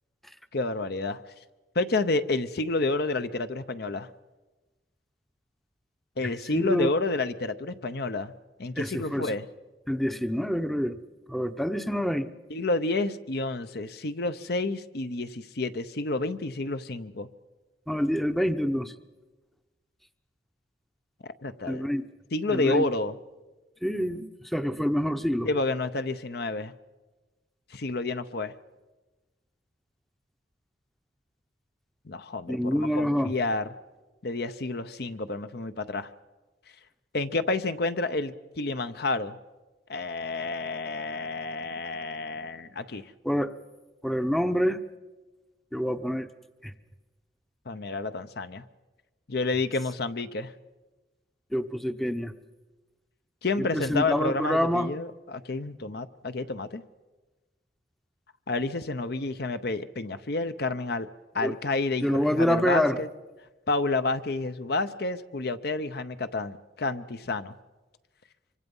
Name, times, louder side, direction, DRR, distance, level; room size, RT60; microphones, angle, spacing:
voice 1, 0.5-1.2 1.7-4.1 6.2-8.3 8.6-9.5 12.5-17.3 21.2-21.9 22.3-23.2 25.4-26.7 27.7-28.5 32.1-33.7 34.2-36.1 37.1-39.4 39.9-43.1 47.7-48.6 49.3-50.5 53.4-56.8 58.5-61.1 61.3-63.1 63.7-67.5, left 3 dB, 55° left, 11 dB, 0.8 m, -30 dB
voice 2, 6.2-6.9 8.8-9.3 9.9-11.0 11.3-12.3 17.9-18.9 21.7-22.0 22.5-22.9 23.8-25.5 32.5-33.3 43.2-43.5 44.0-44.8 45.7-46.3 46.6-46.7 51.5-52.3 53.6-54.9 61.4-61.5 62.0-63.0, equal, ahead, 10 dB, 0.7 m, -27 dB
25.0 x 24.5 x 5.5 m, 1.2 s
head